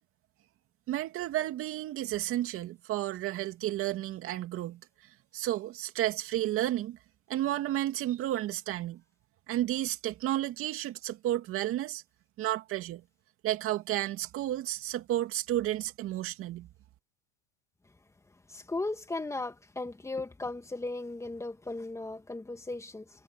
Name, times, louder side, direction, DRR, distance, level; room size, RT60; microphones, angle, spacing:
voice 1, 0.9-4.8 5.3-7.0 7.3-9.0 9.5-12.0 12.4-13.0 13.4-16.7, right 14 dB, 40° right, 2.5 m, -32 dB
voice 2, 18.5-23.0, left 2 dB, 10° left, 2.4 m, -36 dB
supercardioid pair, 120°, 32 cm